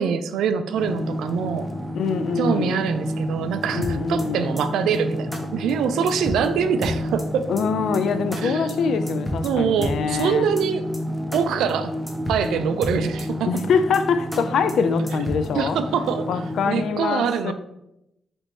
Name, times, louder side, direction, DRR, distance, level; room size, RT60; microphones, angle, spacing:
voice 1, 0.0-1.7 2.4-7.5 8.4-9.0 9.4-10.8 11.3-11.9 12.3-13.5 15.6-16.4 16.7-17.5, right 7 dB, 90° right, 10 dB, 0.3 m, -24 dB
sound 1, 0.8-16.9, left 1 dB, 15° right, 0.6 m, -31 dB
voice 2, 1.9-2.8 3.7-4.5 7.5-10.5 13.5-15.8 16.3-17.5, left 5 dB, 75° left, 11 dB, 0.3 m, -24 dB
sound 2, 3.8-4.2 4.6-4.7 4.9-5.0 5.3-5.4 5.7-5.8 6.1-6.5 6.8-7.2 7.6-7.7 7.9-8.0 8.3-8.4 8.7-8.8 9.1-9.5 9.8-10.2 10.6-10.7 10.9-11.0 11.3-11.4 11.7-11.8 12.1-12.5 12.8-13.2 13.6-13.7 13.9-14.0 14.3-14.4 14.7-14.8 15.1-15.5, equal, 15° left, 0.9 m, -31 dB
3.4 x 3.0 x 4.2 m, 0.84 s
cardioid pair, 75°, 0 cm